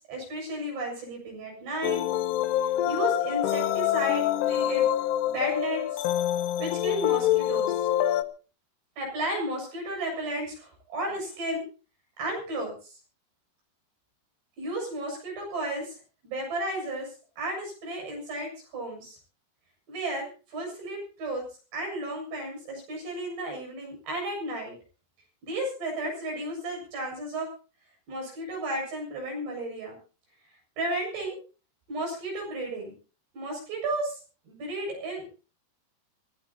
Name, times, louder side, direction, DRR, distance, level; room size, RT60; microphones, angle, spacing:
voice 1, 0.1-2.0 2.9-4.9 5.2-6.0 6.6-7.9 9.0-11.6 12.2-13.0 14.6-16.0 16.2-19.2 19.9-21.4 21.7-24.7 25.4-27.5 28.1-30.0 30.8-31.4 31.9-32.9 33.3-35.3, right 1 dB, 85° right, 1 dB, 9.6 m, -33 dB
sound 1, 1.8-8.2, left 12 dB, 85° left, 3.0 m, -26 dB
23.5 x 17.0 x 2.9 m, 0.36 s
omnidirectional pair, 4.7 m